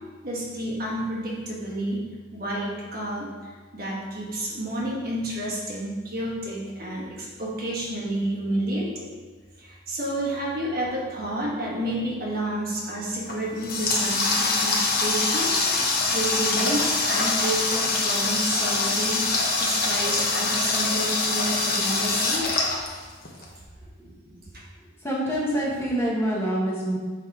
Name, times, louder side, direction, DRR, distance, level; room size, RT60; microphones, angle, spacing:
voice 1, 0.2-9.1 9.6-15.7 16.1-22.5 24.0-24.4, right 1 dB, 50° right, -4 dB, 1.4 m, -30 dB
Water tap faucet, 13.2-23.4, left 3 dB, 50° left, 0.9 m, -24 dB
voice 2, 25.0-27.0, right 1 dB, 15° left, -5 dB, 1.1 m, -26 dB
5.8 x 4.2 x 4.7 m, 1.4 s
head